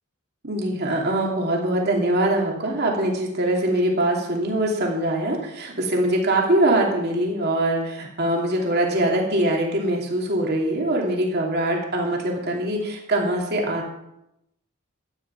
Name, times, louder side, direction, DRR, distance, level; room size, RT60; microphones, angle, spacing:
voice 1, 0.4-13.9, right 1 dB, 45° right, -1 dB, 2.8 m, -23 dB
12.5 x 9.8 x 5.9 m, 0.84 s
head